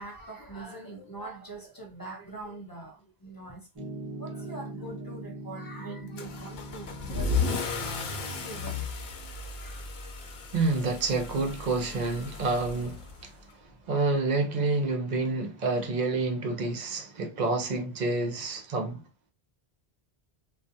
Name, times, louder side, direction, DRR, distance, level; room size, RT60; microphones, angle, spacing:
voice 1, 0.0-3.7 4.1-9.0 9.5-9.9, right 2 dB, 30° left, 0.4 m, -43 dB
Piano, 3.8-8.9, right 1 dB, 25° right, 1.0 m, -42 dB
Car / Engine starting / Accelerating revving vroom, 6.2-13.5, left 4 dB, 80° left, 0.9 m, -34 dB
voice 2, 10.5-13.4 13.9-19.0, right 3 dB, 50° right, 0.6 m, -28 dB
2.4 x 2.2 x 2.6 m
omnidirectional pair, 1.0 m